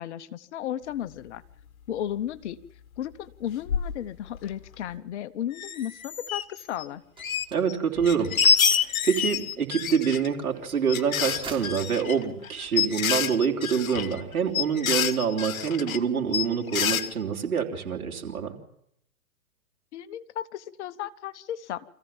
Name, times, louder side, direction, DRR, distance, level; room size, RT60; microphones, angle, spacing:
voice 1, 0.0-1.4 1.9-2.6 3.0-7.0 19.9-21.8, left 11 dB, 50° left, 14 dB, 1.0 m, -34 dB
sound 1, 3.7-3.9 4.3-4.4 4.7-4.8 5.5-6.9 7.2-7.8 8.0-10.3 10.9-16.0 16.3-17.1, left 6 dB, 70° left, 1.5 m, -27 dB
sound 2, 7.2-13.3, right 4 dB, 10° right, 3.6 m, -44 dB
voice 2, 7.5-8.3 8.7-18.5, right 7 dB, 80° right, 2 dB, 3.5 m, -26 dB
25.5 x 15.0 x 7.3 m, 0.73 s
hypercardioid pair, 125°, 43 cm